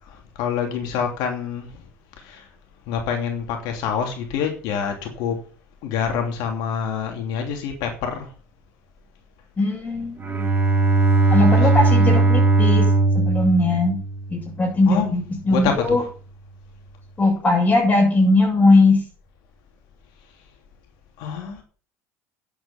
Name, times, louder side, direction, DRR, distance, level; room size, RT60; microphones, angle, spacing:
voice 1, 0.1-1.7 2.2-2.5 2.9-5.4 5.8-8.3 11.4-11.7 14.9-15.1 15.4-16.1 21.2-21.6, left 7 dB, 60° left, 4 dB, 3.0 m, -27 dB
voice 2, 9.6-10.4 11.3-14.0 14.3-16.0 17.2-19.0, left 2 dB, 20° left, -5 dB, 7.6 m, -19 dB
Bowed string instrument, 10.2-14.5, right 3 dB, 25° right, 3.4 m, -18 dB
10.5 x 8.0 x 5.9 m, 0.39 s
hypercardioid pair, 70°, 8 cm